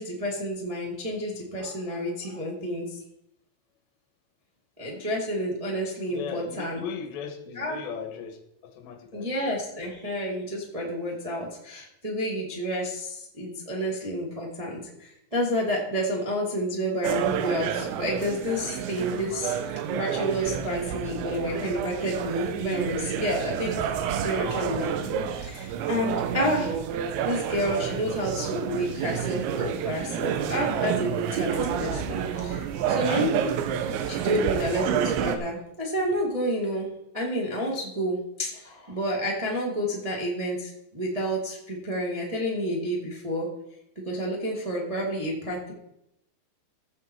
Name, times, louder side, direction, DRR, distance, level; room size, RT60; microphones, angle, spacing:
voice 1, 0.0-2.9 4.8-6.8 7.5-7.8 9.1-19.6 19.9-23.9 24.2-26.8 27.2-33.3 34.1-36.9 37.1-43.5 44.0-45.7, equal, 35° right, -3 dB, 0.5 m, -30 dB
voice 2, 6.1-9.3, left 6 dB, 85° left, 6 dB, 3.5 m, -37 dB
sound 1, 17.0-35.4, right 8 dB, 90° right, 3.1 m, -29 dB
15.0 x 7.1 x 4.6 m, 0.82 s
omnidirectional pair, 5.0 m